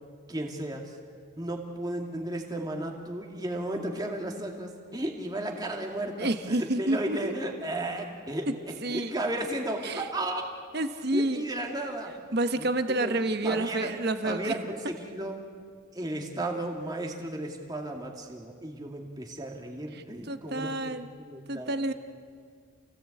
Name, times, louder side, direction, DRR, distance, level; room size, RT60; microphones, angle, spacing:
voice 1, 0.3-0.8 1.4-8.5 8.9-10.5 11.1-12.1 12.6-13.2 13.4-13.9 14.2-15.4 15.9-21.7, right 1 dB, 20° right, 1 dB, 2.3 m, -34 dB
voice 2, 6.2-7.3 8.5-8.6 8.8-9.1 9.8-10.1 10.7-11.4 12.3-14.5 19.9-21.1 21.5-21.9, right 2 dB, 50° right, 9 dB, 1.1 m, -29 dB
28.5 x 17.5 x 8.5 m, 2.1 s
head